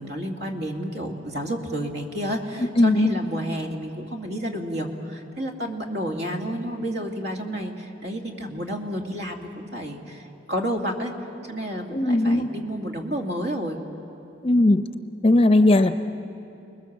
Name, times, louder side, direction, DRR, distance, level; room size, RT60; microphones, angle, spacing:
voice 1, 0.0-11.1 11.5-13.8, equal, 60° right, 1 dB, 2.5 m, -30 dB
voice 2, 2.8-3.1 11.9-12.5 14.4-14.8 15.2-16.0, left 2 dB, 30° left, 9 dB, 0.7 m, -18 dB
29.5 x 21.0 x 7.4 m, 2.8 s
head